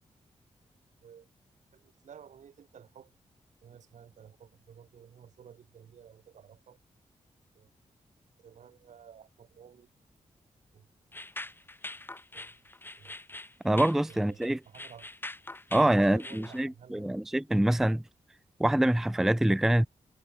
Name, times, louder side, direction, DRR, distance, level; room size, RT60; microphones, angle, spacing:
voice 1, 1.7-3.1 3.6-6.8 7.5-7.7 8.4-9.9 10.7-10.9 12.3-12.6 13.0-13.2 13.6-15.1 15.8-17.2, right 8 dB, 85° right, 4.2 m, -53 dB
sound 1, 11.1-16.6, left 2 dB, 15° left, 1.1 m, -43 dB
voice 2, 13.6-14.6 15.7-18.0 18.6-19.9, right 1 dB, 5° right, 0.4 m, -25 dB
cardioid pair, 75°, 12 cm